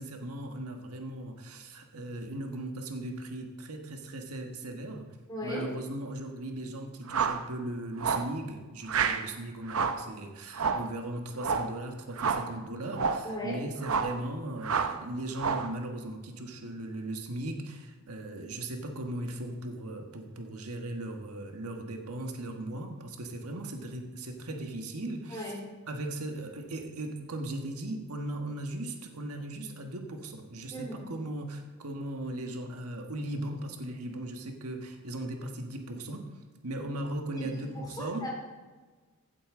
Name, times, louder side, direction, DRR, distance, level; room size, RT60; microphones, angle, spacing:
voice 1, 0.0-5.1 5.4-25.5 25.9-36.2 36.6-38.2, right 1 dB, 85° right, 3 dB, 1.4 m, -38 dB
voice 2, 5.3-5.7 13.2-13.6 25.3-25.6 30.7-31.0 37.3-38.3, equal, 20° left, -3 dB, 3.1 m, -37 dB
sound 1, 7.1-7.5 8.0-8.3 8.9-9.3 9.7-10.1 10.5-10.9 11.4-11.7 12.2-12.5 12.9-13.3 13.8-14.2 14.6-15.0 15.4-15.7, right 5 dB, 70° right, 0.7 m, -29 dB
16.0 x 8.5 x 3.8 m, 1.3 s
head